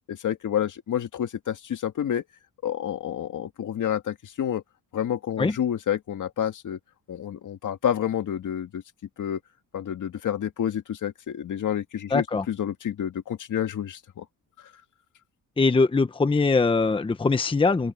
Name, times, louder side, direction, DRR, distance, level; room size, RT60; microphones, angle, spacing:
voice 1, 0.1-2.2 2.6-4.6 4.9-6.8 7.1-8.8 9.2-9.4 9.7-14.2, left 9 dB, 50° left, 1.9 m, -29 dB
voice 2, 12.1-12.4 15.6-17.9, left 3 dB, 15° left, 0.9 m, -22 dB
open air
cardioid pair, 140°, 38 cm